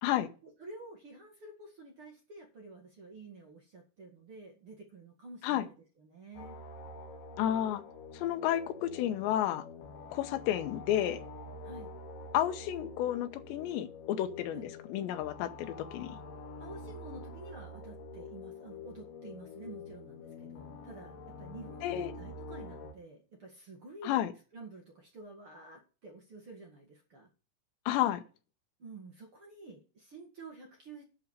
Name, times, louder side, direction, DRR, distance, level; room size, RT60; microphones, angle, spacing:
voice 1, 0.4-6.6 11.6-11.9 14.5-14.7 16.6-24.2 24.5-27.3 28.8-31.0, right 3 dB, 40° right, 2.1 m, -50 dB
sound 1, 6.3-22.9, left 3 dB, 60° left, 3.1 m, -47 dB
voice 2, 7.4-7.8 8.1-9.6 10.1-11.2 12.3-14.6 14.9-16.2 21.8-22.1 24.0-24.3 27.9-28.2, left 12 dB, 90° left, 3.1 m, -31 dB
11.5 x 4.9 x 8.1 m
omnidirectional pair, 5.0 m